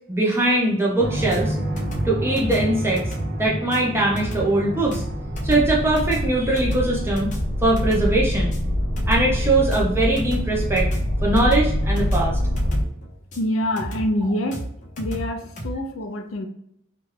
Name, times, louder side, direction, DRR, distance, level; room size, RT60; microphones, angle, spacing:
voice 1, 0.1-1.5 2.0-3.0 3.4-5.0 5.4-7.3 7.6-8.6 9.1-10.9 11.2-12.4, right 2 dB, 10° right, -3 dB, 0.6 m, -21 dB
sound 1, 1.0-12.8, equal, 75° right, 0.9 m, -25 dB
sound 2, 1.3-15.7, right 1 dB, 40° left, 0.6 m, -33 dB
voice 2, 13.4-14.6 15.0-16.5, left 1 dB, 85° left, 5 dB, 0.4 m, -25 dB
2.9 x 2.3 x 3.2 m, 0.73 s
head